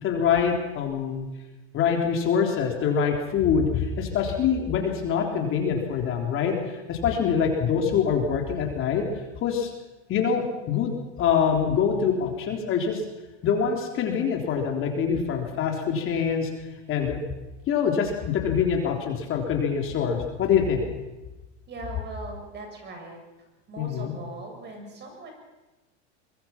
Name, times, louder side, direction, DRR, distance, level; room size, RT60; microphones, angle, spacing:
voice 1, 0.0-1.3 1.7-9.1 9.4-9.7 10.1-10.9 11.2-13.0 13.4-16.5 16.9-17.2 17.7-20.9 23.8-24.1, left 7 dB, 35° left, 2 dB, 3.7 m, -25 dB
voice 2, 21.7-23.2 23.7-25.3, right 2 dB, 30° right, 3 dB, 7.0 m, -40 dB
23.0 x 22.5 x 6.0 m, 1.1 s
supercardioid pair, 125°, 35 cm